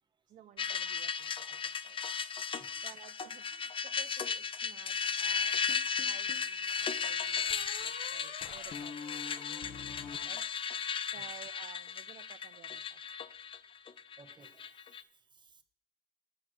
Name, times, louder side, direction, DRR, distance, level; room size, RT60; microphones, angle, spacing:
voice 1, 0.3-2.0 2.8-5.6 5.9-9.0 10.2-10.4 11.1-12.8, right 11 dB, 50° right, 8 dB, 0.4 m, -55 dB
sound 1, 0.6-15.0, left 6 dB, 30° left, 0.5 m, -36 dB
sound 2, 5.7-6.5 7.5-11.0, left 6 dB, 55° left, 0.9 m, -46 dB
voice 2, 14.2-15.6, right 4 dB, 25° right, 8 dB, 1.0 m, -61 dB
9.4 x 4.7 x 7.7 m, 0.62 s
cardioid pair, 110°, 17 cm